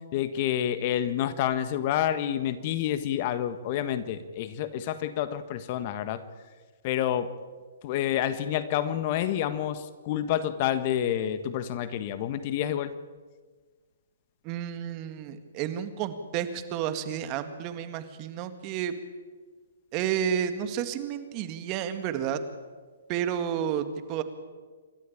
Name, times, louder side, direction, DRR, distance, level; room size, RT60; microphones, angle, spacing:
voice 1, 0.1-6.2 6.8-7.3 7.8-12.9, left 11 dB, 40° left, 12 dB, 1.4 m, -28 dB
voice 2, 14.4-18.9 19.9-22.4 23.1-24.2, right 9 dB, 30° right, 10 dB, 2.0 m, -31 dB
28.0 x 13.0 x 8.7 m, 1.5 s
hypercardioid pair, 135°, 0 cm